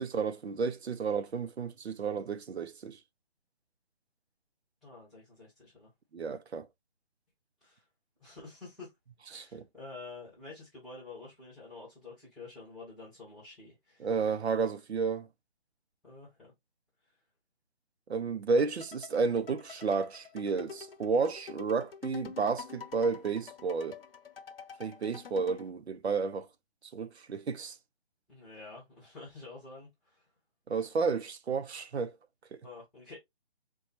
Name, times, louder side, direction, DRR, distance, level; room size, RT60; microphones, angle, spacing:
voice 1, 0.0-3.0 6.1-6.7 9.3-9.6 14.0-15.3 18.1-24.0 24.8-26.5 26.9-27.8 30.7-32.1 32.5-32.6, right 5 dB, 90° right, 0.6 m, -31 dB
voice 2, 4.8-5.9 7.6-7.8 8.2-8.9 9.3-14.2 16.0-16.5 28.3-30.3 32.6-33.2, left 3 dB, ahead, 0.4 m, -49 dB
sound 1, 18.6-25.7, left 6 dB, 65° left, 0.7 m, -47 dB
4.6 x 2.2 x 2.8 m
hypercardioid pair, 160°, 31 cm